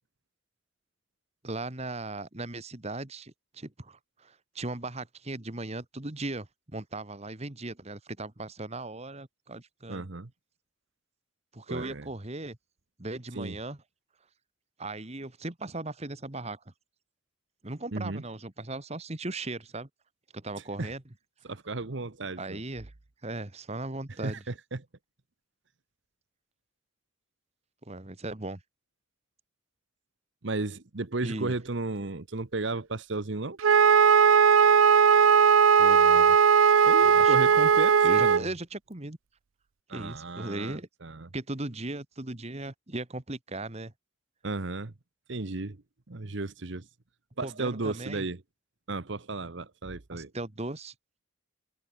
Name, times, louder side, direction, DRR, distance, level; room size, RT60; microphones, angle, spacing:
voice 1, 1.4-10.0 11.5-12.6 13.0-13.8 14.8-16.6 17.6-19.9 20.3-21.0 22.4-22.9 23.2-24.4 27.8-28.6 31.2-31.5 35.8-36.4 37.0-37.4 38.0-39.2 39.9-40.9 41.3-43.9 47.4-48.3 50.1-50.9, right 2 dB, 30° right, 1.6 m, -37 dB
voice 2, 9.9-10.3 11.7-12.1 13.3-13.6 17.9-18.2 20.8-20.9 21.4-22.6 24.2-24.8 30.4-33.6 36.8-38.5 39.9-41.3 44.4-44.9 45.3-45.8 46.1-46.9 47.4-48.4 48.9-50.3, right 3 dB, 60° right, 1.1 m, -34 dB
Wind instrument woodwind instrument, 33.6-38.4, right 6 dB, 75° right, 0.6 m, -19 dB
head